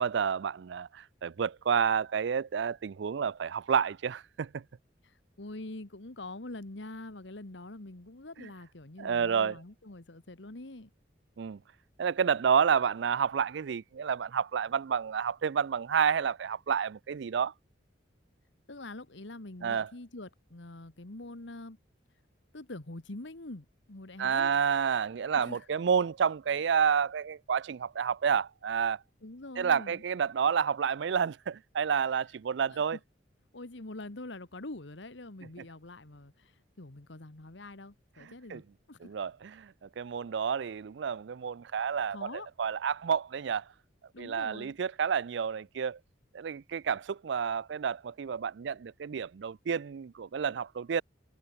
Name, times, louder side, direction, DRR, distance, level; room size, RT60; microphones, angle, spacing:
voice 1, 0.0-4.6 8.4-8.5 9.0-9.6 11.4-11.6 12.0-17.5 19.6-19.9 24.2-29.0 29.6-33.0 38.2-38.6 39.0-43.6 44.2-46.0 46.3-51.0, right 7 dB, 70° right, 0.4 m, -30 dB
voice 2, 5.0-10.9 18.7-21.8 22.5-24.6 25.3-25.6 29.2-30.0 32.7-33.0 33.5-38.6 38.9-39.1 42.1-42.5 44.1-44.8, left 2 dB, 75° left, 1.6 m, -45 dB
head